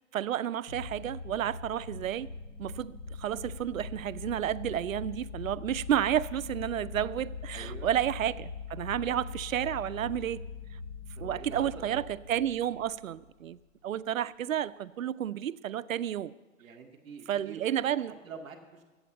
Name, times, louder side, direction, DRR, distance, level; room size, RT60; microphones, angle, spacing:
voice 1, 0.1-2.3 2.6-10.5 11.2-13.6 13.8-16.3 17.3-18.1, right 10 dB, 90° right, 17 dB, 0.5 m, -31 dB
sound 1, 0.7-13.5, left 5 dB, 85° left, 3.7 m, -42 dB
voice 2, 7.5-7.9 11.2-12.0 16.6-17.6 17.9-18.8, right 5 dB, ahead, -8 dB, 0.3 m, -46 dB
11.5 x 8.0 x 8.0 m, 1.2 s
hypercardioid pair, 140°, 39 cm